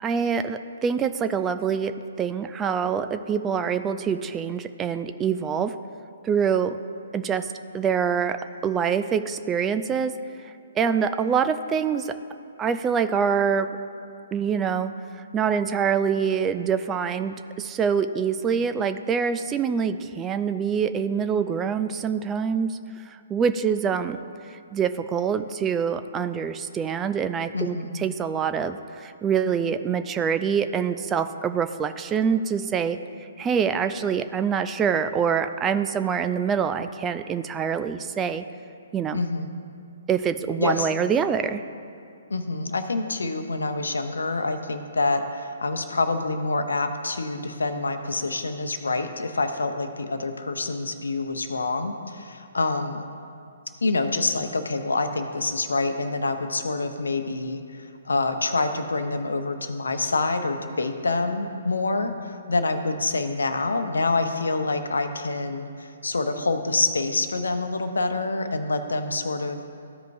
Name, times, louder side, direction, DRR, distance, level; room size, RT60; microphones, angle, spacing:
voice 1, 0.0-5.7 6.2-6.8 7.1-8.4 8.6-10.1 10.8-12.1 12.6-13.7 14.3-14.9 15.3-22.8 23.1-24.2 24.5-33.0 33.4-38.4 38.9-39.2 40.1-41.6, right 7 dB, 15° right, 9 dB, 0.3 m, -25 dB
voice 2, 27.5-28.0 39.1-39.5 40.6-40.9 42.3-53.1 53.8-69.6, left 3 dB, 70° left, 7 dB, 0.8 m, -26 dB
14.5 x 5.2 x 2.6 m, 2.6 s
figure-of-eight pair, 130°, 0 cm